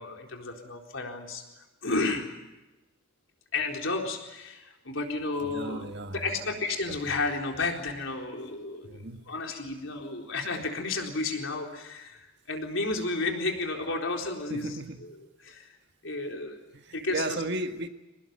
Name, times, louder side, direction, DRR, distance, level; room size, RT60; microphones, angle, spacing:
voice 1, 0.0-1.4 1.8-2.3 3.5-14.7 15.0-15.1 15.4-15.7 16.0-16.6 16.9-17.4, left 3 dB, 75° left, 2 dB, 4.1 m, -32 dB
voice 2, 5.4-6.6 6.9-7.1 8.8-9.2 14.5-15.0 16.7-17.9, right 2 dB, 55° right, 7 dB, 1.6 m, -35 dB
24.0 x 19.5 x 9.1 m, 1.0 s
head